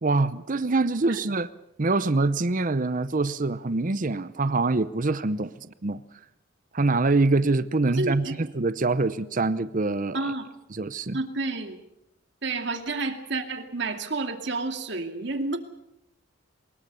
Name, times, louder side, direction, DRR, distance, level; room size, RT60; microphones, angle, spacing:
voice 1, 0.0-1.5 1.8-6.0 6.7-10.2 10.7-11.2, right 3 dB, 40° right, 14 dB, 0.7 m, -25 dB
voice 2, 8.0-8.4 10.1-10.5 11.1-11.8 12.4-15.6, right 3 dB, 60° right, 6 dB, 2.4 m, -30 dB
23.5 x 21.0 x 6.9 m, 0.84 s
head